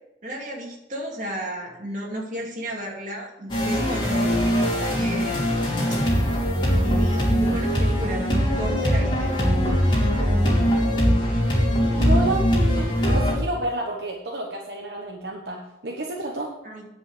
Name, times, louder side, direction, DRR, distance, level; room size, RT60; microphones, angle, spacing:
voice 1, 0.2-5.7 6.6-9.4 16.6-16.9, right 1 dB, 45° right, -2 dB, 2.5 m, -33 dB
sound 1, 3.5-13.4, equal, 30° left, 3.0 m, -21 dB
voice 2, 11.9-16.5, right 1 dB, 70° right, 0 dB, 1.2 m, -30 dB
9.9 x 5.5 x 6.7 m, 0.89 s
head